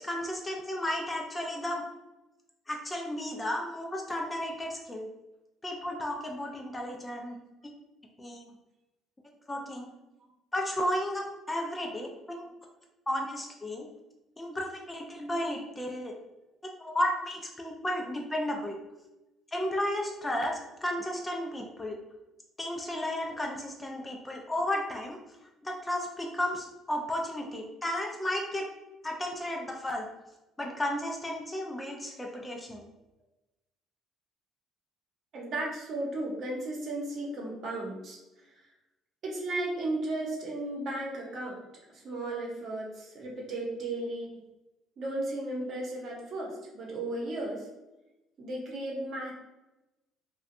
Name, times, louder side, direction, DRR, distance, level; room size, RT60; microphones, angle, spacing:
voice 1, 0.0-1.8 2.7-5.1 5.6-7.4 8.2-8.4 9.5-9.9 10.5-12.4 13.1-13.9 14.4-16.1 16.8-18.8 19.5-22.0 22.6-25.2 25.6-28.7 29.0-30.1 30.6-32.9, left 1 dB, 15° left, 1 dB, 0.3 m, -33 dB
voice 2, 35.3-38.5 39.2-41.6 41.9-44.4 45.0-47.7 48.4-49.3, right 2 dB, 55° right, -2 dB, 0.8 m, -35 dB
2.5 x 2.1 x 2.6 m, 0.99 s
cardioid pair, 105°, 0 cm